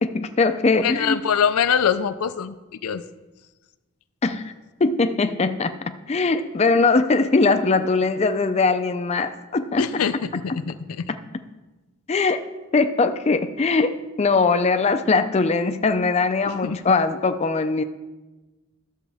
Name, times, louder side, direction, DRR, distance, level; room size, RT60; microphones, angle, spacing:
voice 1, 0.0-1.2 4.2-4.5 4.8-10.0 12.1-12.4 12.7-17.8, left 3 dB, 30° left, 9 dB, 0.4 m, -21 dB
voice 2, 0.8-2.5 2.8-3.0 9.8-11.1 16.5-16.8, left 7 dB, 85° left, 12 dB, 0.4 m, -23 dB
13.0 x 7.2 x 3.5 m, 1.2 s
head